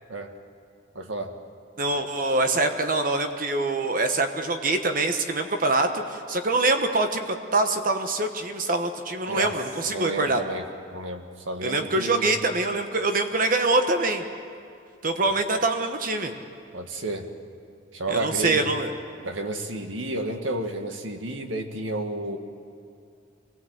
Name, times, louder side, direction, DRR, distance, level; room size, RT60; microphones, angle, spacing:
voice 1, 1.0-1.3 9.3-9.5 9.9-10.6 10.9-12.3 15.3-15.4 16.7-17.3 17.9-18.7 19.2-22.4, right 1 dB, 80° right, 5 dB, 1.8 m, -31 dB
voice 2, 1.8-10.4 11.6-14.2 15.0-16.3 18.1-18.9, right 2 dB, 45° right, 6 dB, 1.2 m, -24 dB
25.5 x 17.5 x 8.0 m, 2.4 s
head